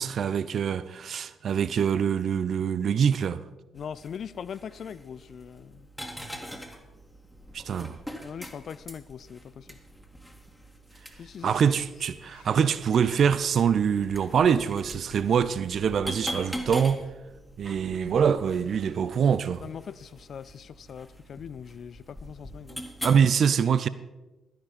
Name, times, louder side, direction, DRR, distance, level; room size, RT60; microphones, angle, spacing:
voice 1, 0.0-3.4 7.5-8.0 11.4-17.0 17.6-19.6 23.0-23.9, right 7 dB, 55° right, 0.5 m, -24 dB
voice 2, 3.7-5.9 7.7-9.8 11.1-11.8 19.6-22.8, left 7 dB, 55° left, 0.4 m, -41 dB
sound 1, 3.8-23.2, equal, ahead, 2.1 m, -43 dB
sound 2, 12.2-19.1, left 3 dB, 70° left, 2.9 m, -52 dB
15.5 x 12.5 x 4.3 m
figure-of-eight pair, 40°, 0 cm